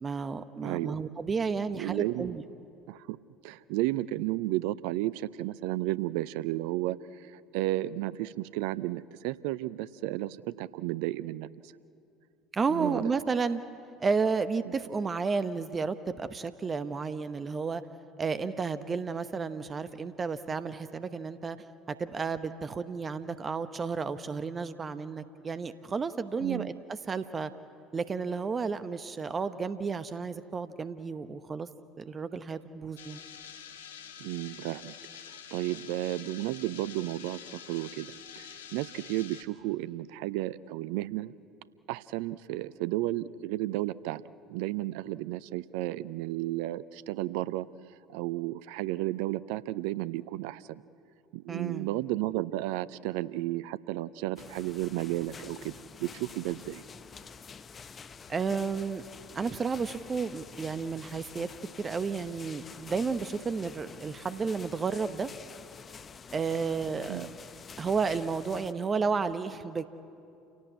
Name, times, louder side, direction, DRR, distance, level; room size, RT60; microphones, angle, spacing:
voice 1, 0.0-2.4 12.5-13.6 14.0-17.8 18.2-21.6 21.9-26.7 27.1-27.5 27.9-31.7 32.0-33.2 51.5-51.9 58.3-59.0 59.3-61.5 61.8-65.3 66.3-67.3 67.8-69.8, right 5 dB, 30° right, 12 dB, 0.9 m, -32 dB
voice 2, 0.6-1.0 1.7-2.4 2.9-3.2 3.4-11.7 12.7-13.1 14.6-14.7 26.4-26.7 34.2-34.9 35.5-41.3 41.9-44.2 44.5-50.8 51.3-56.8 67.1-67.3, right 16 dB, 65° right, 18 dB, 0.6 m, -33 dB
sound 1, 33.0-39.4, left 8 dB, 75° left, 1.2 m, -47 dB
sound 2, 54.4-68.7, left 6 dB, 35° left, 0.9 m, -48 dB
28.5 x 17.5 x 8.4 m, 2.7 s
figure-of-eight pair, 65°, 0 cm